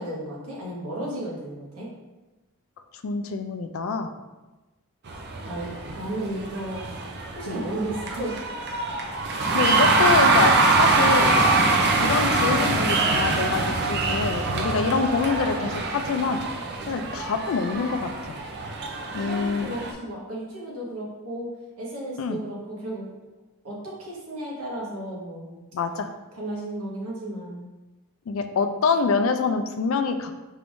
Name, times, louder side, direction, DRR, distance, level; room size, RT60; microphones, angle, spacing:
voice 1, 0.0-1.9 5.4-7.0 7.3-8.4 19.2-21.5 21.8-23.1 23.6-25.6 26.3-27.7, right 1 dB, 90° right, -5 dB, 1.3 m, -34 dB
voice 2, 2.9-4.1 7.5-7.6 9.5-11.4 12.0-16.4 16.9-18.4 19.1-19.7 22.2-22.4 25.7-26.1 28.3-30.3, left 4 dB, 65° left, 7 dB, 0.4 m, -25 dB
sound 1, 5.1-19.9, right 3 dB, 50° right, 0.5 m, -24 dB
4.5 x 3.5 x 2.6 m, 1.1 s
head